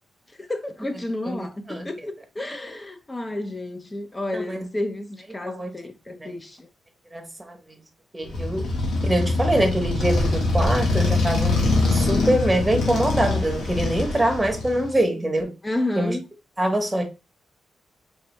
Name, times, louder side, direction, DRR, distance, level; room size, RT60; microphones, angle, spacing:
voice 1, 0.4-6.7 15.6-16.2, left 1 dB, 20° left, 0.8 m, -31 dB
voice 2, 1.2-1.9 4.3-4.7 5.4-5.7 6.1-6.3 7.1-7.8 8.1-8.7 9.0-15.5 15.9-16.2 16.6-17.0, right 1 dB, 15° right, 1.1 m, -24 dB
Motorcycle, 8.3-15.0, left 2 dB, 80° left, 1.4 m, -23 dB
4.5 x 3.4 x 2.2 m
cardioid pair, 85°, 0 cm